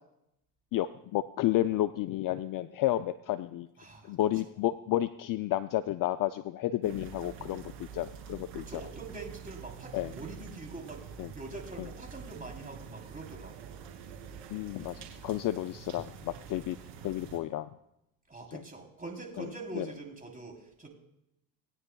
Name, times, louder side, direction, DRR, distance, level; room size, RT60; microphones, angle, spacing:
voice 1, 0.7-3.7 4.0-8.8 9.9-10.1 11.2-11.3 14.5-16.8 17.0-17.7 18.5-18.6 19.4-19.5 19.8-19.9, left 14 dB, 45° left, 13 dB, 0.4 m, -31 dB
voice 2, 3.8-4.2 8.6-13.8 18.3-20.9, right 3 dB, 15° right, 2 dB, 3.5 m, -44 dB
sound 1, 6.8-17.4, right 7 dB, 80° right, 2.7 m, -46 dB
19.0 x 9.7 x 2.3 m, 0.82 s
hypercardioid pair, 65°, 48 cm